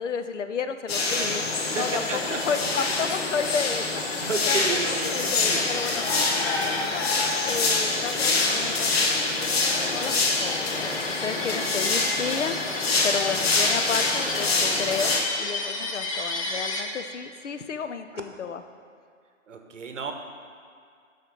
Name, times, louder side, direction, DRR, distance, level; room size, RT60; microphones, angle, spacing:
voice 1, 0.0-7.0 7.4-9.3 9.6-18.6, left 6 dB, 65° left, 9 dB, 0.7 m, -32 dB
sound 1, 0.9-15.2, left 3 dB, 50° left, 1.1 m, -25 dB
sound 2, 1.7-16.8, left 2 dB, 25° left, 0.7 m, -35 dB
voice 2, 1.7-2.6 4.2-5.6 11.2-11.7 18.1-18.2 19.5-20.1, right 4 dB, 70° right, 4 dB, 1.2 m, -32 dB
11.0 x 4.4 x 5.2 m, 2.2 s
hypercardioid pair, 160°, 39 cm